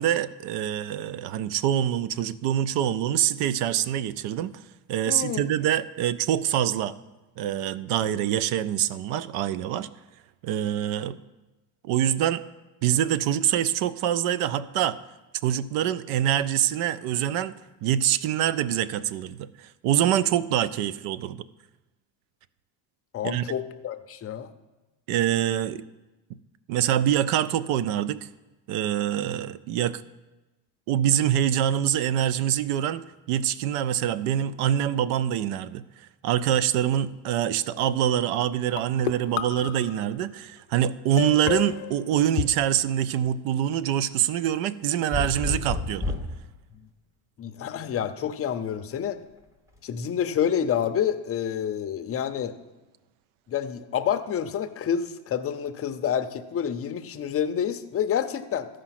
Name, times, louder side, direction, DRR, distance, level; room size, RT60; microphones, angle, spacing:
voice 1, 0.0-4.6 4.9-7.0 7.4-9.9 10.4-11.2 11.8-12.4 12.8-15.0 15.4-17.5 17.8-21.4 23.2-23.4 25.1-25.8 26.7-28.2 28.7-30.0 30.9-46.1, right 11 dB, 80° right, 17 dB, 0.6 m, -25 dB
voice 2, 5.1-5.4 23.1-24.5 47.4-49.2 49.8-52.5 53.5-58.7, left 8 dB, 30° left, 9 dB, 0.5 m, -28 dB
sound 1, 37.8-38.2 38.8-40.2 41.2-42.5, left 15 dB, 85° left, 0.6 m, -31 dB
sound 2, 45.1-46.4 48.0-48.6, left 2 dB, 5° right, 0.9 m, -30 dB
13.0 x 5.1 x 5.8 m, 1.1 s
cardioid pair, 130°, 49 cm